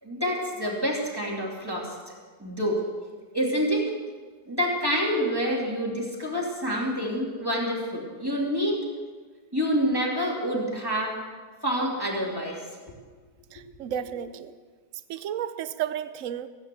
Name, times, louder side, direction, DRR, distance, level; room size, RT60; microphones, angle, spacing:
voice 1, 0.0-1.9 2.4-2.8 3.3-3.9 4.5-8.8 9.5-11.2 11.6-12.6, equal, 10° right, -3 dB, 2.7 m, -27 dB
voice 2, 13.5-14.5 15.1-16.5, right 10 dB, 65° right, 12 dB, 0.8 m, -32 dB
16.5 x 9.1 x 6.9 m, 1.5 s
omnidirectional pair, 2.0 m